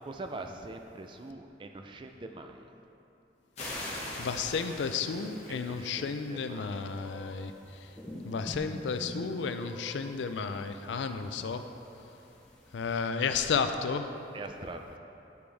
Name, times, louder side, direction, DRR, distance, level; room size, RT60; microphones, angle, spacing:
voice 1, 0.0-2.7 5.5-6.8 14.3-15.0, right 2 dB, 25° right, 5 dB, 0.3 m, -43 dB
sound 1, 3.6-6.1, left 1 dB, 35° left, 1.3 m, -41 dB
voice 2, 4.2-7.5 8.3-11.6 12.7-14.1, left 5 dB, 85° left, 8 dB, 0.4 m, -32 dB
sound 2, 4.4-13.0, equal, 5° left, 1.0 m, -48 dB
9.3 x 5.1 x 3.4 m, 2.9 s
head